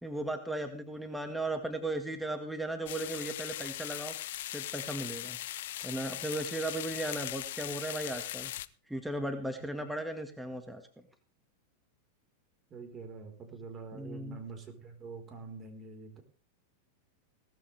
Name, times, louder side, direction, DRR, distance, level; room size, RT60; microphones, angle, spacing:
voice 1, 0.0-4.1 4.5-5.4 5.8-8.5 8.9-10.8 13.9-14.4, right 1 dB, 5° right, 6 dB, 1.8 m, -36 dB
sound 1, 2.9-8.7, left 14 dB, 70° left, 0.7 m, -39 dB
voice 2, 12.7-16.2, right 4 dB, 25° right, 4 dB, 4.5 m, -45 dB
18.0 x 13.5 x 3.5 m, 0.35 s
hypercardioid pair, 125°, 0 cm